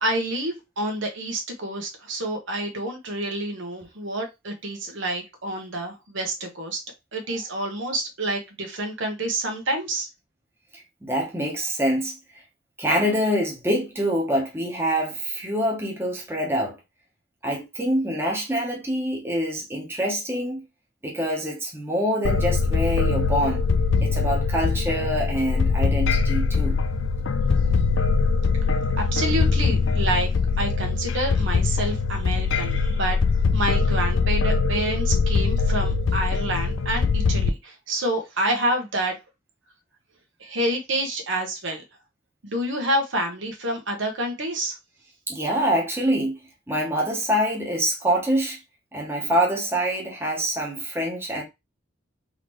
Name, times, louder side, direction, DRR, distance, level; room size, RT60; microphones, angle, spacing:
voice 1, 0.0-6.8 7.1-10.1 29.0-30.3 30.6-33.2 33.5-39.2 40.4-41.8 42.4-44.7, right 1 dB, 75° right, 1.2 m, -28 dB
voice 2, 10.7-12.2 12.8-16.8 17.4-20.6 21.0-23.6 24.0-26.8 45.3-46.4 46.7-48.6 48.9-51.4, equal, 10° right, 1.0 m, -25 dB
sound 1, 22.2-37.5, left 4 dB, 75° left, 0.4 m, -22 dB
3.9 x 3.2 x 3.1 m
head